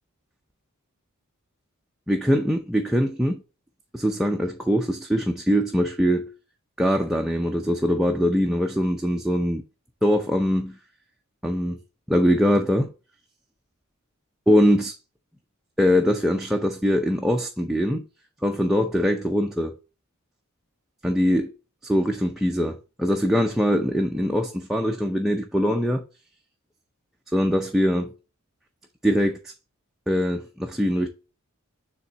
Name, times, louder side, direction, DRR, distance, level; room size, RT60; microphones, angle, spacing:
voice 1, 2.1-3.4 3.9-6.3 6.8-9.6 10.0-10.7 11.4-11.8 12.1-12.9 14.5-14.9 15.8-18.0 18.4-19.7 21.0-21.5 21.8-26.0 27.3-28.1 29.0-29.4 30.1-31.1, equal, ahead, 0.5 m, -22 dB
7.1 x 3.6 x 3.9 m
head